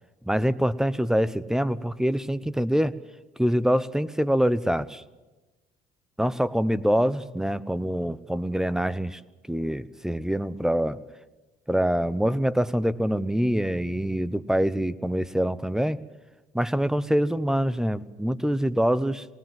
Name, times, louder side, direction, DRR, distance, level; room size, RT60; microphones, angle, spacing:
voice 1, 0.2-3.0 3.4-5.0 6.2-9.2 9.5-11.0 11.7-16.0 16.5-19.3, equal, 5° right, 17 dB, 0.8 m, -25 dB
20.0 x 19.5 x 7.6 m, 1.1 s
cardioid pair, 110°, 17 cm